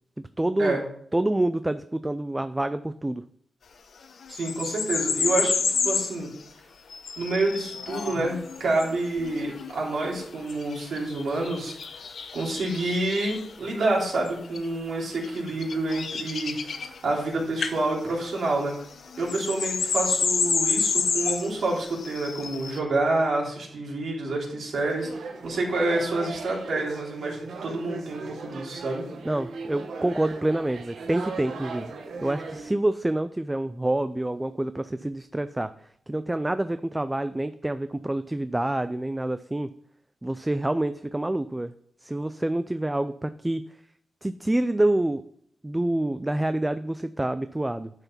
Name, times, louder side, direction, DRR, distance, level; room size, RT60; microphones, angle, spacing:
voice 1, 0.4-0.8 1.1-3.2 29.3-31.9 32.2-35.7 36.1-39.7 40.2-41.7 42.0-43.6 44.2-45.2 45.6-47.9, right 1 dB, 10° right, 11 dB, 0.3 m, -27 dB
sound 1, 4.2-6.1 6.9-13.5 14.3-14.6 15.1-17.3 17.6-17.8 18.0-22.8, left 5 dB, 65° left, 1.0 m, -29 dB
voice 2, 4.3-6.3 7.2-11.8 12.3-16.5 17.0-18.7 19.2-29.0, right 2 dB, 65° right, -3 dB, 3.5 m, -28 dB
sound 2, 24.7-32.7, right 4 dB, 85° right, 1.3 m, -38 dB
10.5 x 5.8 x 5.8 m, 0.66 s
wide cardioid pair, 135°, 0 cm